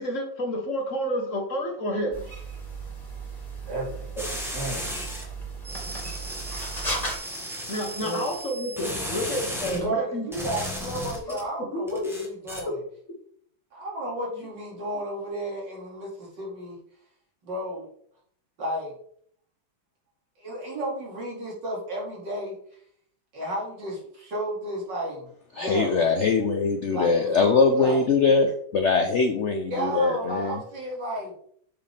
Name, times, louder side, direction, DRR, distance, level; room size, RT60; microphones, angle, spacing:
voice 1, 0.0-2.3 7.7-10.2 11.3-12.1, equal, 45° left, 1 dB, 1.5 m, -30 dB
sound 1, 2.1-7.2, right 2 dB, 20° left, 2.1 m, -35 dB
voice 2, 3.7-4.1 4.5-4.9 6.7-6.9 8.0-8.2 9.7-12.8 13.7-16.8 17.4-17.9 18.6-19.0 20.4-22.8 23.3-26.1 26.9-28.1 29.7-31.3, right 1 dB, 70° right, -3 dB, 3.0 m, -32 dB
sound 2, 4.2-5.2 5.6-9.8 10.3-11.4 11.9-12.6, equal, ahead, 1.2 m, -35 dB
voice 3, 25.5-30.6, left 4 dB, 75° left, 6 dB, 0.6 m, -22 dB
8.0 x 5.0 x 3.4 m, 0.64 s
omnidirectional pair, 2.0 m